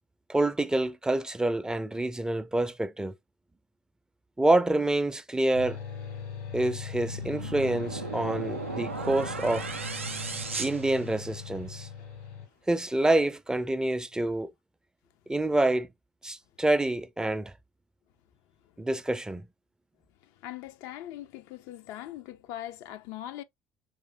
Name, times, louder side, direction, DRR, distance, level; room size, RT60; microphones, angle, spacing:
voice 1, 0.3-3.1 4.4-5.8 6.5-9.7 10.6-11.9 12.7-14.5 15.3-15.9 16.2-17.5 18.8-19.5, right 2 dB, 10° right, 0.4 m, -27 dB
sound 1, 5.5-12.5, left 7 dB, 80° left, 1.1 m, -40 dB
sound 2, 7.0-11.6, right 4 dB, 90° right, 0.4 m, -36 dB
voice 2, 20.4-23.4, left 13 dB, 60° left, 0.3 m, -41 dB
3.6 x 3.2 x 2.9 m
figure-of-eight pair, 60°, 7 cm